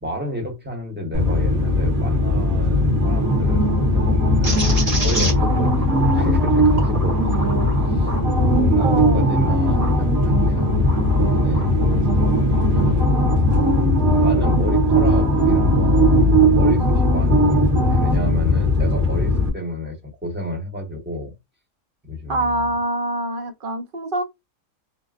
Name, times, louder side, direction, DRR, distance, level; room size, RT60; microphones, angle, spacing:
voice 1, 0.0-4.7 5.0-7.4 7.9-8.1 8.4-11.8 12.7-13.6 14.2-20.0 20.2-21.3 22.1-22.7, equal, 10° right, 0.9 m, -31 dB
sound 1, 1.1-19.5, equal, 75° right, 1.6 m, -18 dB
sound 2, 4.4-10.0 10.5-11.7, right 1 dB, 30° right, 1.0 m, -31 dB
voice 2, 8.8-9.2 22.3-24.2, right 2 dB, 50° right, 0.8 m, -25 dB
3.8 x 2.2 x 2.4 m
omnidirectional pair, 1.5 m